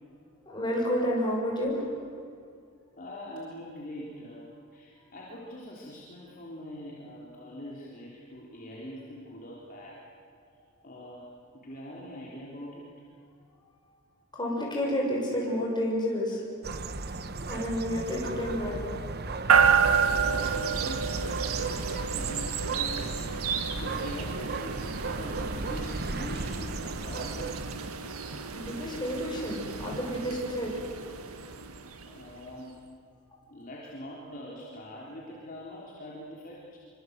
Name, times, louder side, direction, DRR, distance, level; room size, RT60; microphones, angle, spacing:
voice 1, 0.4-1.9 9.7-9.8 14.3-16.4 17.5-18.9 28.5-30.7, equal, 20° left, -2 dB, 6.6 m, -30 dB
voice 2, 3.0-10.0 10.4-10.5 10.8-11.3 11.5-12.9 20.2-21.3 21.6-23.3 23.7-27.6 28.7-29.0 32.0-32.8 33.5-36.8, left 1 dB, 40° left, -5 dB, 3.6 m, -43 dB
sound 1, 16.6-27.9, right 3 dB, 50° right, 1.1 m, -36 dB
sound 2, 19.5-32.5, right 6 dB, 90° right, 1.8 m, -30 dB
26.0 x 24.5 x 8.1 m, 2.3 s
head